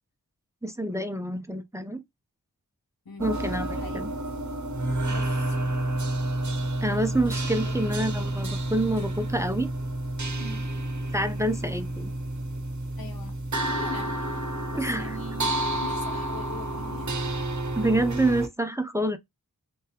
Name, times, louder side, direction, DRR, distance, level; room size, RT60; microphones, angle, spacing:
voice 1, 0.6-2.0 3.2-4.1 6.8-9.7 11.1-12.1 14.8-15.1 17.7-19.2, right 1 dB, 10° right, 0.5 m, -27 dB
voice 2, 3.0-3.4 3.7-4.0 5.1-5.9 7.6-7.9 10.3-11.1 13.0-13.4 13.7-17.2, left 3 dB, 85° left, 0.9 m, -43 dB
sound 1, 3.2-18.5, right 1 dB, 55° right, 0.8 m, -30 dB
3.4 x 2.9 x 3.2 m
wide cardioid pair, 55°, 35 cm